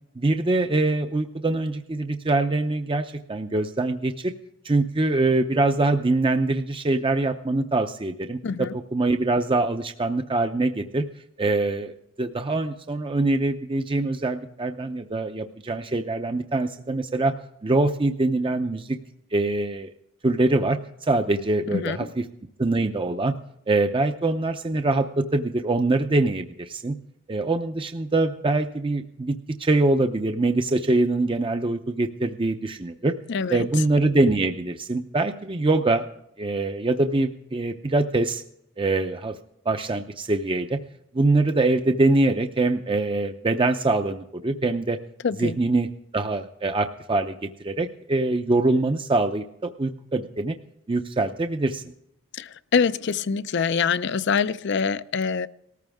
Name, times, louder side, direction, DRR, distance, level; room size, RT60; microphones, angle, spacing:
voice 1, 0.2-4.3 4.6-11.1 11.4-17.3 17.6-19.0 19.3-19.9 20.2-22.2 22.6-23.3 23.7-26.9 27.3-33.1 33.5-36.0 36.4-38.4 38.8-39.3 39.7-40.8 41.1-45.0 45.4-45.9 46.1-50.6 50.9-51.8, right 2 dB, 25° right, 0.6 m, -24 dB
voice 2, 8.4-8.7 21.7-22.0 33.3-33.6 45.2-45.5 52.3-55.5, left 6 dB, 60° left, 0.5 m, -25 dB
19.0 x 14.0 x 3.5 m
head